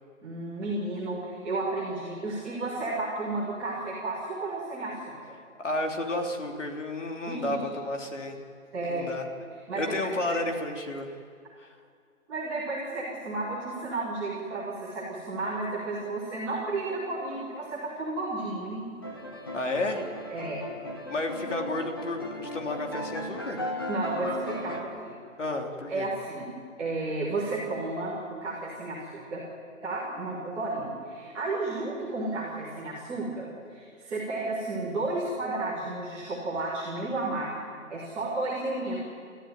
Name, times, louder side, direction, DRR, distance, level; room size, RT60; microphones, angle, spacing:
voice 1, 0.2-5.3 7.3-7.5 8.7-9.1 9.7-9.9 10.3-10.4 12.3-18.8 20.3-20.6 23.9-25.2 25.9-26.5 26.8-29.4 29.8-37.5 37.9-39.0, right 2 dB, 5° right, -11 dB, 1.8 m, -32 dB
voice 2, 5.6-8.4 8.8-9.3 9.8-11.2 11.6-11.7 19.5-20.1 21.1-23.6 25.4-26.1, left 2 dB, 60° left, 2 dB, 3.4 m, -32 dB
sound 1, 19.0-24.8, left 1 dB, 15° left, 1.1 m, -37 dB
29.0 x 14.5 x 9.4 m, 2.2 s
hypercardioid pair, 180°, 42 cm